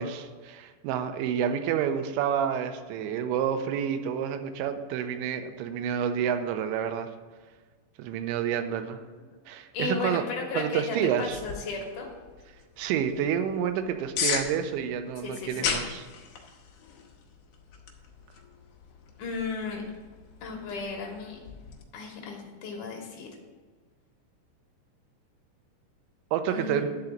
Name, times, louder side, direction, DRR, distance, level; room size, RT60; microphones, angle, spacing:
voice 1, 0.0-7.1 8.0-9.0 9.5-10.2 10.6-11.4 12.8-16.1 26.3-26.9, right 8 dB, 85° right, 8 dB, 2.9 m, -29 dB
voice 2, 9.7-12.1 15.2-15.8 19.2-19.8 20.4-21.4 21.9-23.3 26.5-26.8, left 4 dB, 75° left, 0 dB, 1.9 m, -35 dB
Soda Can Opening, 11.3-21.8, left 6 dB, 90° left, 1.7 m, -38 dB
11.5 x 3.9 x 7.3 m, 1.4 s
omnidirectional pair, 5.3 m